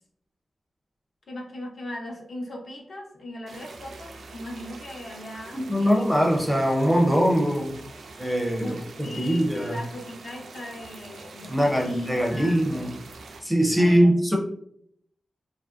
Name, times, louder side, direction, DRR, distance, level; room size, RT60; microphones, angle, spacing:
voice 1, 1.3-6.2 8.5-12.8 13.8-14.1, left 1 dB, 55° left, 0 dB, 0.6 m, -38 dB
sound 1, 3.5-13.4, right 3 dB, 90° right, 0.4 m, -44 dB
voice 2, 5.5-7.8 8.2-8.7 9.2-9.8 11.5-13.0 13.4-14.4, equal, 5° right, -2 dB, 0.5 m, -22 dB
2.8 x 2.5 x 2.3 m, 0.69 s
wide cardioid pair, 145°, 0 cm